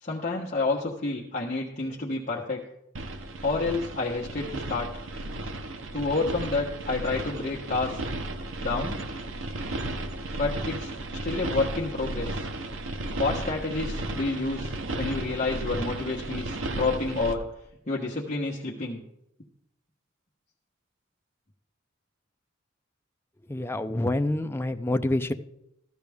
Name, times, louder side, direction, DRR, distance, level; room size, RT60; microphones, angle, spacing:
voice 1, 0.0-2.6 3.4-5.1 5.9-8.0 8.6-9.0 10.4-10.9 11.2-12.5 13.2-17.4 17.9-19.0, left 3 dB, 40° left, -4 dB, 1.3 m, -29 dB
sound 1, 2.9-17.3, right 1 dB, 80° right, 1.0 m, -34 dB
voice 2, 23.5-25.3, left 1 dB, 10° left, 8 dB, 0.5 m, -27 dB
15.0 x 12.0 x 3.6 m, 0.82 s
head